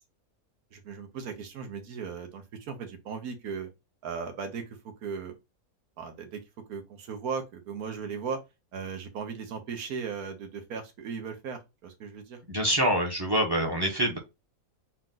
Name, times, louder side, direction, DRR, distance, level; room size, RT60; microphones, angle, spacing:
voice 1, 0.7-3.7 4.0-5.4 6.0-6.4 6.7-8.4 8.7-12.4, right 6 dB, 80° right, 1.4 m, -37 dB
voice 2, 12.5-14.2, right 1 dB, 20° right, 0.8 m, -25 dB
4.4 x 2.4 x 3.8 m
omnidirectional pair, 1.6 m